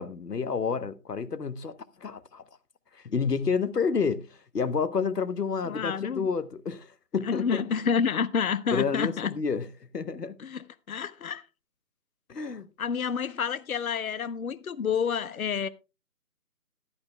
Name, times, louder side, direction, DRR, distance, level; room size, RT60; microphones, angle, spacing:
voice 1, 0.0-2.4 2.9-7.6 8.7-10.3 12.3-12.7, left 5 dB, 80° left, 1.1 m, -30 dB
voice 2, 5.6-6.3 7.2-9.4 10.4-11.4 12.8-15.7, left 6 dB, 60° left, 0.8 m, -29 dB
15.5 x 11.5 x 2.2 m
figure-of-eight pair, 155°, 47 cm